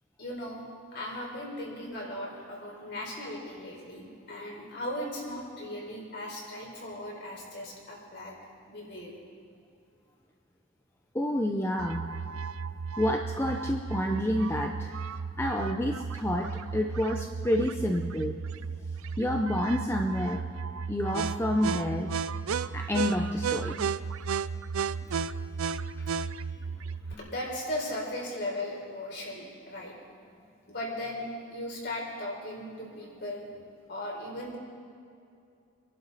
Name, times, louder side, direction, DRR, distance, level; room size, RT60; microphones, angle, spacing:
voice 1, 0.2-0.6 0.9-9.1 27.2-29.9 30.7-33.5 33.9-34.6, left 1 dB, 50° left, -3 dB, 4.1 m, -37 dB
voice 2, 11.1-12.2 13.0-14.9 15.4-18.4 19.2-20.4 20.9-22.2 22.7-23.8, left 1 dB, 10° left, 2 dB, 0.6 m, -29 dB
sound 1, 11.8-27.1, right 6 dB, 80° right, 0.5 m, -34 dB
26.0 x 11.5 x 4.1 m, 2.5 s
head